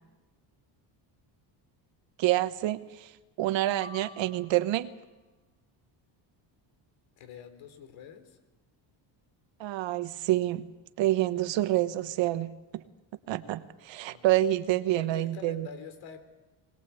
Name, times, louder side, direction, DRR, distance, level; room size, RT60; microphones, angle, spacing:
voice 1, 2.2-3.1 3.4-4.9 9.6-10.7 11.0-12.8 13.3-15.7, right 15 dB, 70° right, 13 dB, 1.2 m, -27 dB
sound 1, 3.8-5.1, left 1 dB, 10° left, 2.7 m, -49 dB
voice 2, 7.2-8.4 14.0-14.4 14.9-16.3, left 7 dB, 75° left, 9 dB, 3.5 m, -46 dB
21.0 x 20.5 x 8.4 m, 1.1 s
cardioid pair, 170°, 47 cm